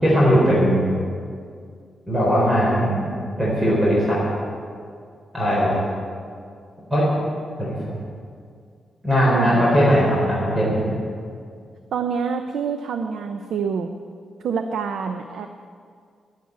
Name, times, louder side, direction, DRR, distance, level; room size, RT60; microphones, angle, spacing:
voice 1, 0.0-1.0 2.1-4.2 5.3-5.8 6.9-7.1 7.6-7.7 9.0-11.0, equal, 20° right, -6 dB, 4.1 m, -19 dB
voice 2, 9.3-9.7 11.9-13.9 14.4-15.5, right 6 dB, 85° right, 7 dB, 0.7 m, -26 dB
11.5 x 11.0 x 8.1 m, 2.2 s
wide cardioid pair, 140°, 0 cm